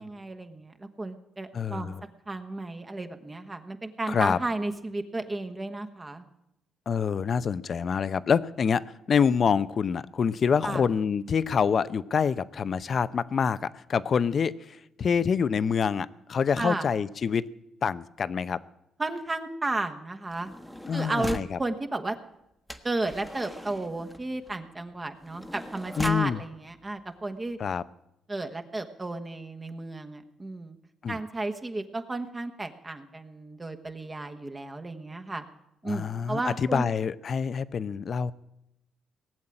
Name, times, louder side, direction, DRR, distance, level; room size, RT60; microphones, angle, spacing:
voice 1, 0.0-1.9 2.3-6.2 10.6-10.8 16.6-16.9 19.0-20.5 20.9-22.1 22.8-27.6 28.3-30.8 31.1-35.4 35.8-36.8, right 2 dB, 25° right, 6 dB, 1.3 m, -33 dB
voice 2, 1.5-2.0 4.1-4.4 6.9-17.4 17.8-18.6 20.9-21.6 26.0-26.4 27.6-27.8 31.0-31.2 35.9-38.3, left 6 dB, 50° left, 16 dB, 0.6 m, -26 dB
sound 1, 20.3-21.6 22.7-26.3 27.2-27.3 27.5-27.8, equal, 5° left, 1.2 m, -40 dB
18.5 x 7.4 x 9.8 m, 0.85 s
cardioid pair, 90°, 0 cm